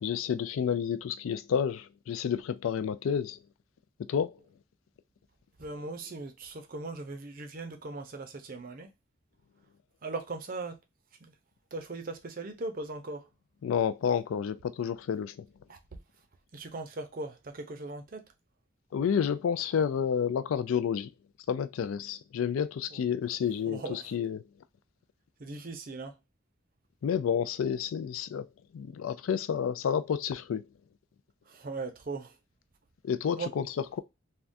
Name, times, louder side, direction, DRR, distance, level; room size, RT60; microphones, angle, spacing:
voice 1, 0.0-3.4 4.1-4.4 13.6-15.5 18.9-21.1 21.5-24.4 27.0-28.5 28.7-30.6 33.0-33.7, left 7 dB, 85° left, 0.3 m, -30 dB
voice 2, 5.6-8.9 10.0-10.8 11.2-11.3 11.7-13.3 15.7-15.8 16.5-18.3 23.7-24.1 25.4-26.1 31.5-32.3 33.4-33.5, right 3 dB, 45° right, 0.5 m, -39 dB
3.5 x 2.2 x 2.5 m
head